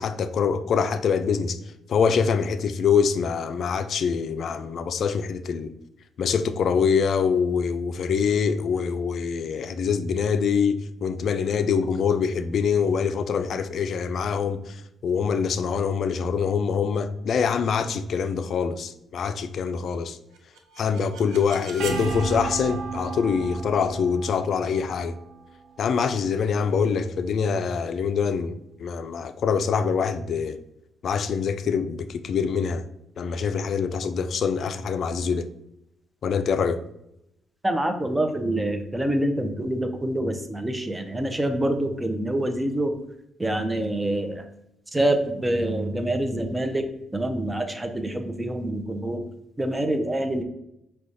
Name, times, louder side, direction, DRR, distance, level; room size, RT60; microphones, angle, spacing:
voice 1, 0.0-1.6 1.9-5.7 6.2-14.8 15.0-20.2 20.8-25.2 25.8-30.6 31.0-32.8 33.2-35.5 36.2-36.8, left 6 dB, 60° left, 0.4 m, -24 dB
sound 1, 20.4-26.2, right 4 dB, 80° right, 0.7 m, -35 dB
voice 2, 37.6-42.9 43.4-44.4 44.9-46.8 47.1-49.2 49.6-50.4, right 1 dB, 15° right, 0.6 m, -26 dB
4.8 x 2.3 x 4.0 m
cardioid pair, 90°, 0 cm